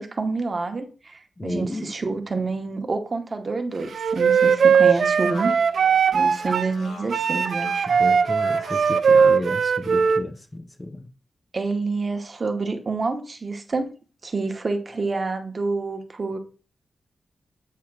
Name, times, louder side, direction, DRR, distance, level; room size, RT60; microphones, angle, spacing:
voice 1, 0.0-5.5 6.1-7.9 11.5-13.9 14.2-16.4, right 3 dB, 30° right, 0.9 m, -28 dB
voice 2, 1.4-1.9 7.9-11.1 14.9-15.0, left 1 dB, 20° left, 0.5 m, -33 dB
Wind instrument woodwind instrument, 3.9-6.7 7.1-10.2, right 6 dB, 60° right, 0.4 m, -19 dB
Speech, 4.1-9.5, left 3 dB, 60° left, 2.2 m, -42 dB
8.3 x 2.9 x 6.0 m
wide cardioid pair, 175°, 0 cm